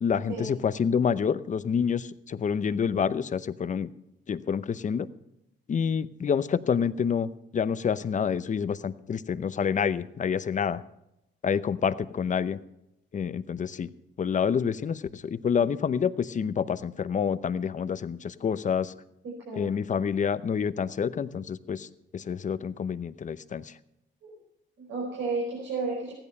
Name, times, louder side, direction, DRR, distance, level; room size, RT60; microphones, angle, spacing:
voice 1, 0.0-3.9 4.3-5.1 5.7-10.8 11.4-12.6 13.1-13.9 14.2-18.9 19.5-21.9 22.1-23.7, left 7 dB, 40° left, 14 dB, 0.7 m, -28 dB
voice 2, 19.2-19.7 24.2-24.3 24.8-26.1, right 3 dB, 75° right, -3 dB, 5.1 m, -32 dB
15.0 x 11.0 x 5.5 m, 0.84 s
cardioid pair, 90°, 20 cm